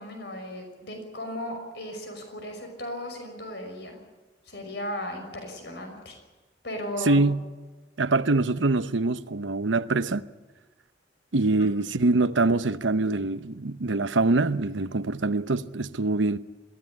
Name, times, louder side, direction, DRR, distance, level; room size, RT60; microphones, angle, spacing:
voice 1, 0.0-4.0 4.5-6.2 6.6-7.2, left 1 dB, 65° left, 5.8 m, -36 dB
voice 2, 7.0-7.4 8.0-10.2 11.3-16.4, right 3 dB, 90° right, 0.9 m, -24 dB
23.0 x 16.5 x 9.6 m
head